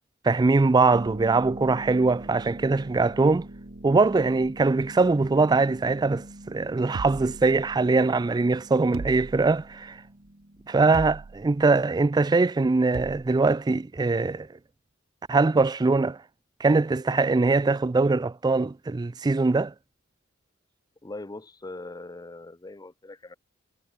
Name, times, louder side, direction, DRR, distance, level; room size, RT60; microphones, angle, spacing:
voice 1, 0.2-3.5 3.8-10.0 10.7-14.5 15.3-16.2 16.6-19.7, right 3 dB, 20° right, 0.3 m, -22 dB
Harp, 0.9-11.5, right 1 dB, 45° right, 2.0 m, -44 dB
sound 1, 6.9-8.1 8.9-9.8 10.9-11.6 12.9-13.4, right 4 dB, 85° right, 0.6 m, -38 dB
voice 2, 21.0-23.4, left 2 dB, 20° left, 0.6 m, -41 dB
head